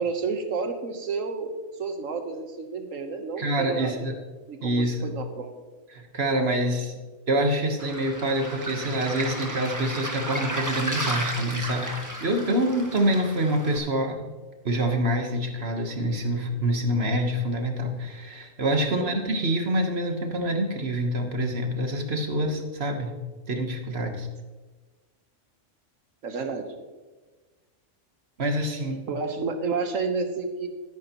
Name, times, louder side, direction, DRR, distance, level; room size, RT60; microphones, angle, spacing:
voice 1, 0.0-1.5 1.8-3.9 4.5-5.6 18.9-19.2 26.2-26.7 29.1-30.7, right 4 dB, 85° right, 6 dB, 1.5 m, -30 dB
voice 2, 3.4-4.2 4.6-5.1 5.9-6.9 7.3-11.9 12.2-14.3 14.6-23.1 23.5-24.3 28.4-29.0, right 1 dB, 55° right, 4 dB, 1.5 m, -26 dB
Waves surf, 7.8-13.8, right 1 dB, 15° right, 1.4 m, -33 dB
13.0 x 10.5 x 3.0 m, 1.3 s
omnidirectional pair, 1.3 m